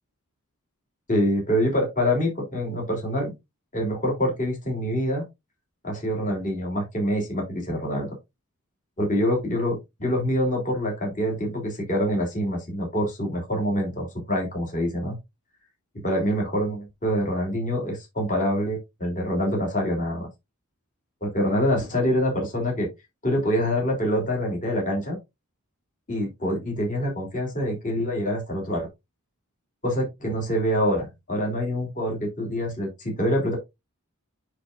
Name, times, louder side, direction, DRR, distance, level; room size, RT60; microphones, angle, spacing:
voice 1, 1.1-3.3 3.7-5.2 5.8-8.1 9.0-15.2 15.9-20.3 21.2-22.9 23.2-25.2 26.1-28.9 29.8-33.6, equal, 35° left, 3.4 m, -25 dB
9.9 x 4.3 x 2.6 m
head